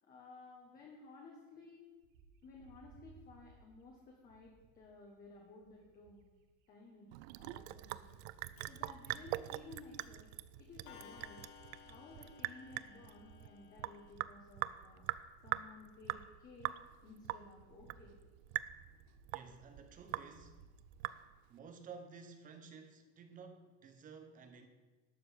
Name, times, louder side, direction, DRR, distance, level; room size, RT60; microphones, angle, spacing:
voice 1, 0.0-1.9 2.4-6.2 6.7-7.1 7.4-8.2 8.7-10.3 10.6-11.5 11.9-15.0 15.4-16.7 17.0-18.1, left 3 dB, 25° left, -2 dB, 1.5 m, -56 dB
Bird, 2.0-6.5 6.9-21.1, right 5 dB, 55° right, 1.3 m, -64 dB
Sink (filling or washing) / Drip, 7.1-21.6, right 17 dB, 80° right, 0.5 m, -43 dB
Clock, 8.6-8.7 9.7-9.8 10.0-10.3 10.9-14.1, left 8 dB, 65° left, 1.7 m, -58 dB
voice 2, 19.3-20.6 21.5-24.7, right 5 dB, 25° right, 7 dB, 1.0 m, -53 dB
12.0 x 4.4 x 8.3 m, 1.2 s
cardioid pair, 165°, 33 cm